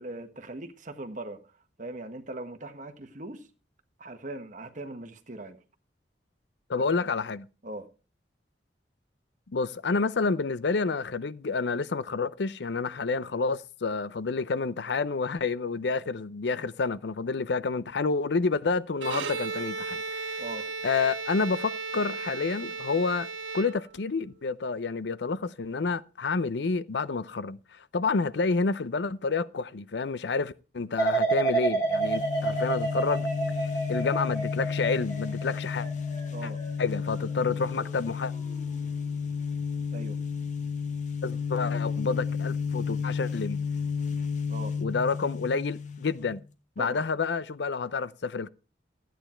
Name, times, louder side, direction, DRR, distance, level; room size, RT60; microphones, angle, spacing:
voice 1, 0.0-1.4 1.8-3.5 4.0-5.6 7.6-7.9 20.4-20.6 36.3-36.6 39.9-40.2 44.5-44.7 46.8-47.0, right 2 dB, 45° right, 1.4 m, -40 dB
voice 2, 6.7-7.5 9.5-20.4 20.8-23.3 23.5-33.3 33.9-35.9 36.4-36.5 36.8-38.3 41.2-43.6 44.8-46.4 46.8-48.5, left 4 dB, 65° left, 0.5 m, -29 dB
Bowed string instrument, 18.9-24.2, right 4 dB, 90° right, 1.7 m, -35 dB
sound 1, 31.0-37.9 38.3-38.8, right 3 dB, 20° left, 3.9 m, -30 dB
sound 2, 31.9-46.4, left 6 dB, 40° left, 1.1 m, -32 dB
13.5 x 9.2 x 4.4 m
head